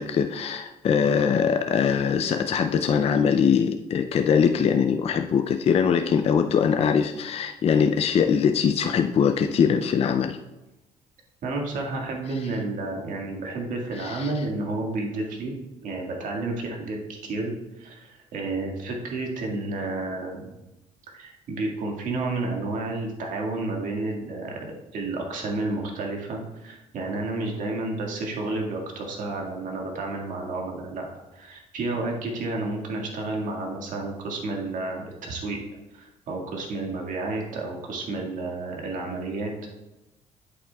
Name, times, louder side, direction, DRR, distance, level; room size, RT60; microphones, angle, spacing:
voice 1, 0.0-10.4 14.0-14.4, left 7 dB, 45° left, 6 dB, 0.4 m, -22 dB
voice 2, 11.4-15.6 15.8-20.5 21.1-24.6 24.9-31.1 31.3-35.6 35.9-39.5, right 2 dB, 65° right, 0 dB, 1.9 m, -31 dB
8.5 x 7.6 x 2.3 m, 1.0 s
cardioid pair, 90°, 14 cm